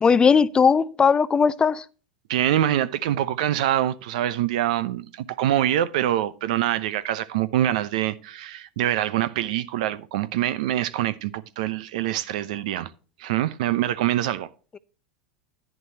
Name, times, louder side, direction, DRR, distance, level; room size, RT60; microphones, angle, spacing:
voice 1, 0.0-1.8, left 6 dB, 20° left, 0.5 m, -18 dB
voice 2, 2.3-12.9 13.2-14.5, right 12 dB, 75° right, 0.7 m, -25 dB
11.0 x 9.6 x 2.9 m
hypercardioid pair, 105°, 4 cm